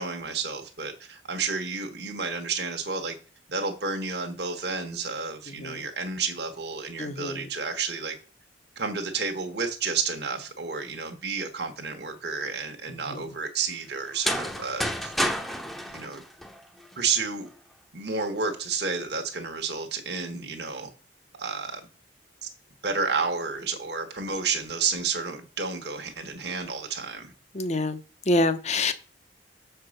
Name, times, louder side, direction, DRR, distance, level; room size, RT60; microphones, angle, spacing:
voice 1, 0.0-3.2 3.5-8.1 8.8-15.1 15.9-16.2 17.0-17.5 17.9-20.9 21.4-21.8 22.4-22.5 22.8-27.3, right 4 dB, 55° right, 1.2 m, -31 dB
voice 2, 7.0-7.5 13.1-13.2 27.5-28.0 28.3-28.9, left 2 dB, 35° left, 0.7 m, -26 dB
sound 1, 14.1-17.0, equal, ahead, 0.7 m, -30 dB
6.7 x 4.7 x 6.4 m
head